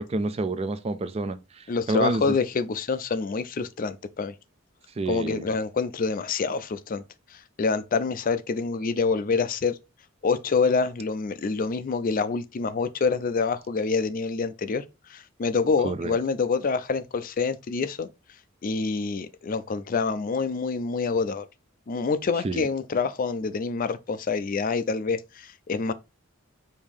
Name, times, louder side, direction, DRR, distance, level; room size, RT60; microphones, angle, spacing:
voice 1, 0.0-2.3 5.0-5.6 15.8-16.2 22.4-22.7, right 2 dB, 30° right, 0.4 m, -29 dB
voice 2, 1.7-4.3 5.1-7.0 7.6-9.8 10.2-14.8 15.1-18.1 18.6-21.5 21.9-25.9, left 4 dB, 40° left, 0.4 m, -26 dB
5.1 x 2.7 x 3.4 m
head